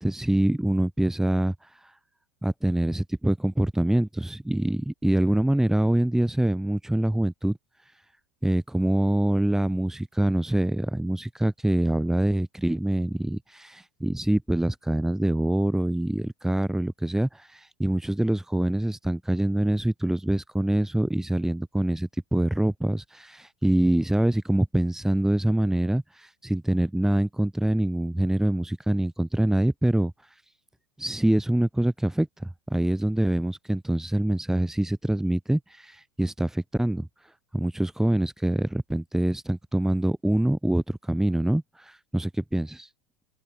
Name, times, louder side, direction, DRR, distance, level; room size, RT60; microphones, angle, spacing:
voice 1, 0.0-1.9 2.4-7.6 8.4-30.1 31.0-37.1 37.5-42.9, right 1 dB, 5° right, 4.0 m, -25 dB
open air
supercardioid pair, 125°, 12 cm